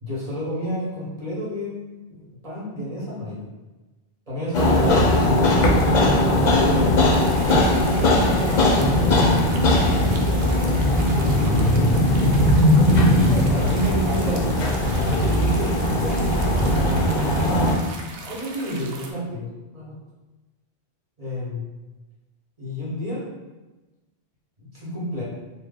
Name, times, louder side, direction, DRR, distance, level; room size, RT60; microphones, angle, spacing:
voice 1, 0.0-3.4 4.3-5.5 6.6-6.9 7.4-12.0 13.5-17.1 18.2-19.9 21.2-21.6 22.6-23.2 24.6-25.2, equal, 35° right, -8 dB, 1.4 m, -30 dB
sound 1, 4.5-17.7, left 1 dB, 50° left, 0.7 m, -19 dB
sound 2, 7.1-19.1, right 3 dB, 90° right, 0.9 m, -39 dB
3.1 x 2.4 x 3.7 m, 1.1 s
omnidirectional pair, 1.1 m